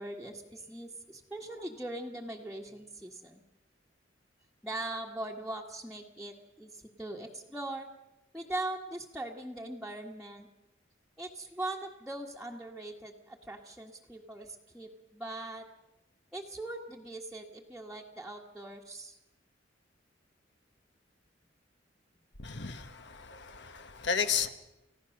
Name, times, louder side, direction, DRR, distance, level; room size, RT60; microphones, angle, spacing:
voice 1, 0.0-3.4 4.6-7.9 8.3-10.5 11.2-15.7 16.3-19.2, right 2 dB, ahead, 1.5 m, -41 dB
voice 2, 22.4-24.5, left 6 dB, 65° left, 1.6 m, -33 dB
30.0 x 16.0 x 6.5 m
head